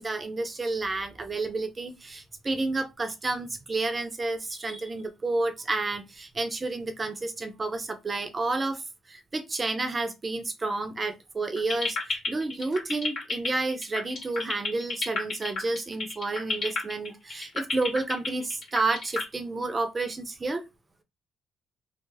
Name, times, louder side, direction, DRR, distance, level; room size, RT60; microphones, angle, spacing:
voice 1, 0.0-8.8 9.1-20.6, right 3 dB, 30° right, 0.6 m, -30 dB
sound 1, 11.6-19.2, left 4 dB, 55° left, 1.5 m, -30 dB
3.2 x 2.0 x 3.3 m
cardioid pair, 90°, 0 cm